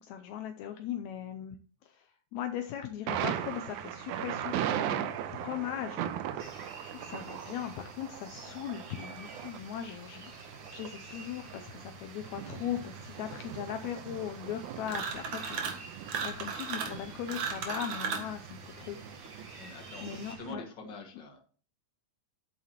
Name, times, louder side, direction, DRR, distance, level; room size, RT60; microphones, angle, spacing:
voice 1, 0.0-1.6 1.8-6.1 6.3-10.3 10.7-15.6 16.2-19.0 19.3-20.6, left 10 dB, 75° left, 7 dB, 1.9 m, -39 dB
Thunder, 3.1-20.5, right 10 dB, 85° right, 2.2 m, -39 dB
sound 1, 6.4-20.4, right 2 dB, 40° right, 3.4 m, -52 dB
sound 2, 14.9-15.8 16.1-18.3, right 6 dB, 70° right, 3.0 m, -35 dB
voice 2, 19.6-21.4, left 2 dB, 40° left, 3 dB, 2.4 m, -45 dB
11.5 x 8.5 x 3.0 m, 0.43 s
omnidirectional pair, 3.5 m